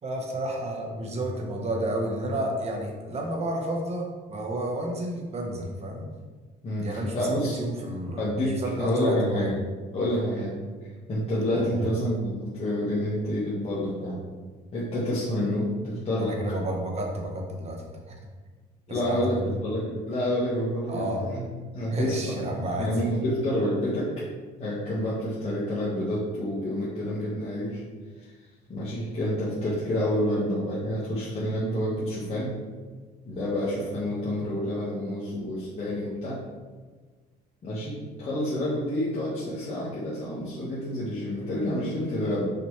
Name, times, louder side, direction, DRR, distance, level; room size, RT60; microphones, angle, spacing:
voice 1, 0.0-6.1 6.8-9.5 11.5-11.7 16.2-18.2 18.9-19.4 20.9-21.2 21.9-22.9, right 1 dB, 40° right, 1 dB, 1.3 m, -31 dB
voice 2, 7.1-7.6 8.2-9.5 9.9-10.5 11.1-14.2 14.7-16.3 18.9-21.4 21.7-22.5 22.8-24.1 24.6-27.8 28.2-28.3 28.7-32.5 33.2-36.4 37.6-42.4, left 1 dB, 35° left, -9 dB, 1.7 m, -28 dB
5.9 x 5.1 x 3.3 m, 1.4 s
cardioid pair, 110°, 17 cm